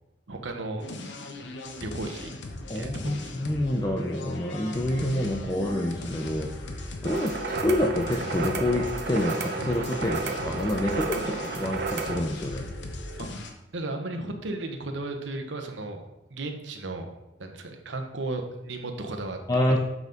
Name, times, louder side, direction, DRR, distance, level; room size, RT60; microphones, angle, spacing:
voice 1, 0.3-0.9 1.8-2.3 2.7-3.3 13.2-13.3 13.7-16.0 16.3-17.1 17.4-19.4 19.7-19.8, right 2 dB, 90° right, 5 dB, 1.0 m, -34 dB
sound 1, 0.8-13.5, left 2 dB, 75° left, 0.9 m, -38 dB
voice 2, 2.7-12.7 19.5-19.8, left 1 dB, 20° left, 0 dB, 0.5 m, -28 dB
sound 2, 7.0-12.2, right 4 dB, 60° right, 0.8 m, -32 dB
8.1 x 5.3 x 3.9 m, 0.94 s
head